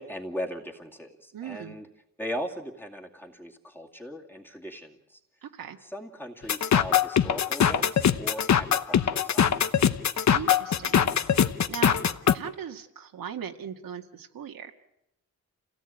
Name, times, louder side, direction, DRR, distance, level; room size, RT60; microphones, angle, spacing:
voice 1, 0.0-1.9 2.2-5.2 5.8-9.5, equal, 5° left, 1 dB, 2.4 m, -38 dB
voice 2, 1.3-1.8 5.4-5.8 10.3-11.1 11.7-12.0 12.3-14.7, right 8 dB, 80° right, 4 dB, 1.9 m, -38 dB
sound 1, 6.5-12.3, left 8 dB, 55° left, 1.0 m, -22 dB
28.5 x 17.0 x 9.0 m, 0.87 s
wide cardioid pair, 155°, 34 cm